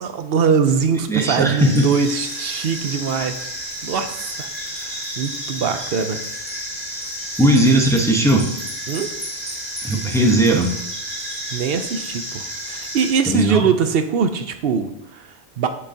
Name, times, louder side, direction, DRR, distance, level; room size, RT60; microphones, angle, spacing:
voice 1, 0.0-3.5 3.8-6.2 8.9-9.1 11.5-15.7, right 6 dB, 70° right, 8 dB, 0.8 m, -22 dB
voice 2, 1.1-1.9 7.4-8.5 9.8-10.8 13.3-13.7, right 1 dB, 5° left, 1 dB, 0.8 m, -17 dB
sound 1, 1.6-13.1, equal, 20° right, 2.6 m, -31 dB
7.7 x 7.0 x 2.7 m, 0.81 s
omnidirectional pair, 1.1 m